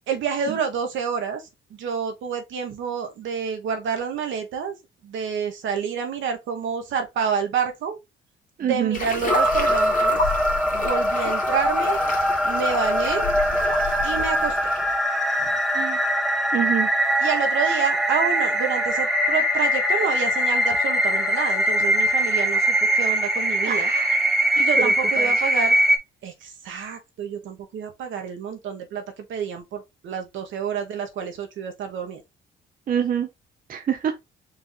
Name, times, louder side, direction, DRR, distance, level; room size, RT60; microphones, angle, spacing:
voice 1, 0.1-1.4 1.7-4.8 5.0-8.0 8.6-10.2 10.7-12.0 12.4-13.3 14.0-14.6 15.4-15.5 17.2-23.9 24.6-25.8 26.2-32.2, right 6 dB, 75° right, 1.3 m, -28 dB
voice 2, 8.6-9.0 15.7-16.1 16.5-16.9 23.6-24.2 24.8-25.3 32.9-33.3 33.7-34.1, right 9 dB, 45° right, 0.7 m, -26 dB
sound 1, 8.9-15.0, left 4 dB, 40° left, 1.4 m, -31 dB
sound 2, 9.3-26.0, equal, ahead, 0.9 m, -22 dB
4.7 x 2.8 x 3.7 m
cardioid pair, 90°, 20 cm